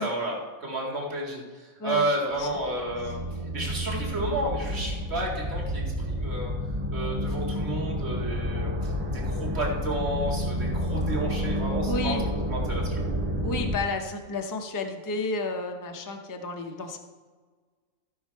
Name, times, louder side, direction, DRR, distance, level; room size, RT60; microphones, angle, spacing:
voice 1, 0.0-3.2 3.5-6.5 6.9-12.2 12.5-13.0, right 1 dB, 50° right, -2 dB, 2.3 m, -31 dB
sound 1, 2.4-13.8, equal, 70° right, 2.6 m, -30 dB
voice 2, 11.9-12.2 13.4-17.0, left 2 dB, 20° left, 4 dB, 0.5 m, -31 dB
14.5 x 5.7 x 4.6 m, 1.4 s
omnidirectional pair, 1.5 m